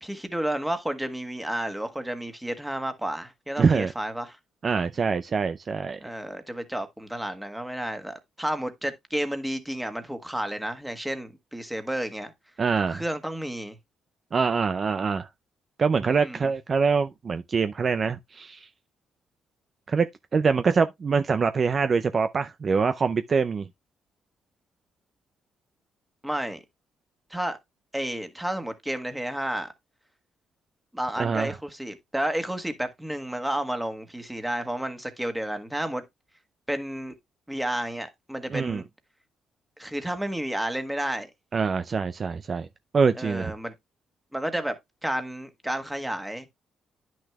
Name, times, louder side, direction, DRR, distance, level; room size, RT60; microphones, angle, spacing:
voice 1, 0.0-4.4 6.0-12.3 12.9-13.8 16.1-16.5 26.2-26.6 27.3-27.6 27.9-29.7 30.9-36.0 36.7-37.1 37.5-38.8 39.8-41.3 43.1-43.7 44.3-44.7 45.0-46.5, right 1 dB, 5° right, 1.5 m, -31 dB
voice 2, 3.6-3.9 4.6-6.0 12.6-13.0 14.3-15.3 15.8-18.7 19.9-20.1 20.3-23.7 31.2-31.5 38.5-38.8 41.5-42.7 42.9-43.5, right 5 dB, 40° right, 0.5 m, -24 dB
10.0 x 6.2 x 2.3 m
cardioid pair, 90°, 0 cm